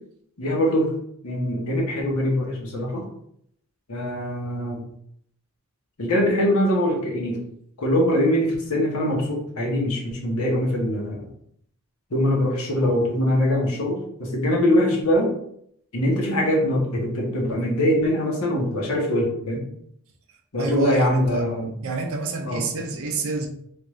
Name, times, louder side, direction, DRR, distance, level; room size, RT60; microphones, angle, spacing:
voice 1, 0.4-0.9 1.2-3.1 3.9-4.8 6.0-7.4 7.8-11.3 12.1-15.3 15.9-19.6 20.5-21.7 22.5-22.6, left 1 dB, 80° left, -2 dB, 1.0 m, -23 dB
voice 2, 20.6-21.5 21.8-23.5, right 3 dB, 65° right, 3 dB, 0.5 m, -27 dB
3.4 x 2.5 x 3.0 m, 0.70 s
head